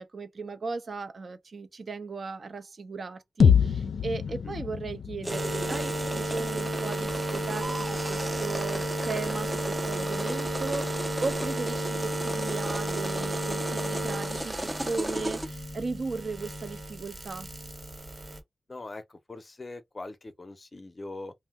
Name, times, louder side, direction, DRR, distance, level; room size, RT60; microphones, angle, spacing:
voice 1, 0.0-17.5, right 4 dB, 65° right, 0.5 m, -37 dB
sound 1, 3.4-7.4, left 7 dB, 85° left, 0.3 m, -26 dB
sound 2, 5.2-15.5, right 1 dB, 15° right, 0.4 m, -36 dB
sound 3, 5.3-18.4, right 1 dB, 45° right, 1.1 m, -33 dB
voice 2, 18.7-21.3, left 2 dB, 40° left, 0.5 m, -42 dB
2.7 x 2.0 x 3.4 m
wide cardioid pair, 75°, 0 cm